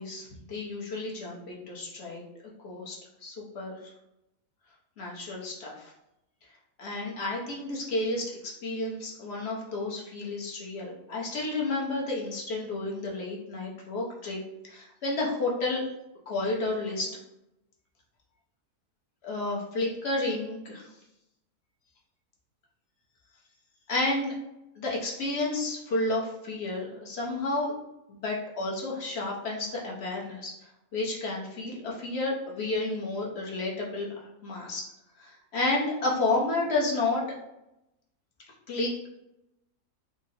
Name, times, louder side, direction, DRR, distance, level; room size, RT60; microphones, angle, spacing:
voice 1, 0.0-2.2 2.6-3.0 3.2-3.8 5.0-5.9 6.8-8.3 8.6-14.4 14.7-15.8 16.3-17.1 19.2-20.9 23.9-24.3 24.8-27.7 28.1-30.5 30.9-34.8 35.2-37.2 38.7-38.9, left 2 dB, 50° left, -3 dB, 0.9 m, -31 dB
3.6 x 2.1 x 4.0 m, 0.88 s
omnidirectional pair, 1.7 m